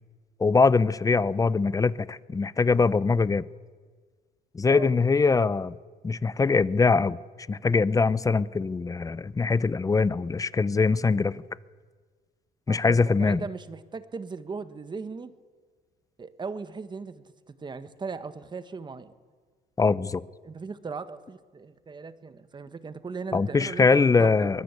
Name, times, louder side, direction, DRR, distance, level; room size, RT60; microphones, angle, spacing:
voice 1, 0.4-3.4 4.5-5.7 6.0-7.2 7.5-11.4 12.7-13.4 19.8-20.2 23.3-24.6, left 4 dB, 20° left, 18 dB, 0.7 m, -22 dB
voice 2, 12.7-15.3 16.2-19.1 20.4-24.3, right 4 dB, 25° right, 12 dB, 1.5 m, -38 dB
24.0 x 21.0 x 8.4 m, 1.5 s
cardioid pair, 110°, 17 cm